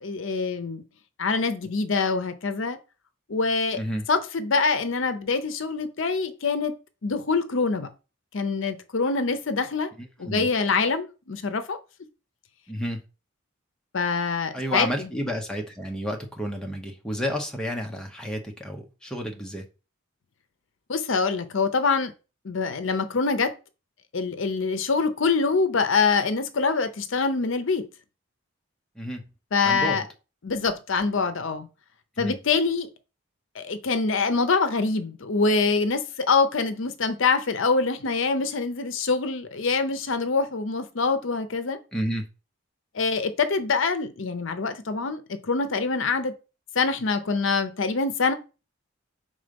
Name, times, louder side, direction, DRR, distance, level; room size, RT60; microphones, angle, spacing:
voice 1, 0.0-0.8 1.2-2.8 3.3-3.8 4.1-6.8 7.0-7.9 8.3-9.9 10.2-11.8 13.9-15.1 20.9-22.1 22.4-23.5 24.1-27.9 29.5-30.0 30.4-31.7 32.2-32.9 33.6-41.8 42.9-46.3 46.8-48.3, left 4 dB, 65° left, 0.6 m, -25 dB
voice 2, 3.7-4.0 10.0-10.5 12.7-13.0 14.5-19.7 29.0-29.2 29.6-30.1 32.2-32.4 41.9-42.3, equal, 5° left, 0.8 m, -31 dB
5.2 x 3.7 x 5.2 m
head